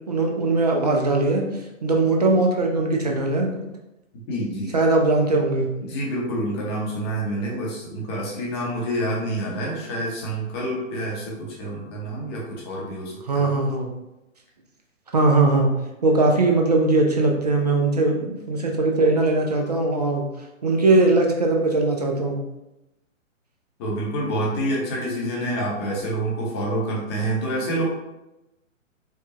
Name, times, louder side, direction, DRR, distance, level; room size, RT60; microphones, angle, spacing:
voice 1, 0.1-1.5 1.8-3.7 4.7-5.7 13.3-13.9 15.1-15.8 16.0-20.3 20.6-22.4, right 2 dB, 35° right, 2 dB, 0.4 m, -20 dB
voice 2, 4.3-4.7 5.8-13.6 23.8-27.9, right 1 dB, 20° left, -3 dB, 0.7 m, -27 dB
4.7 x 2.2 x 2.7 m, 0.93 s
figure-of-eight pair, 130°, 40 cm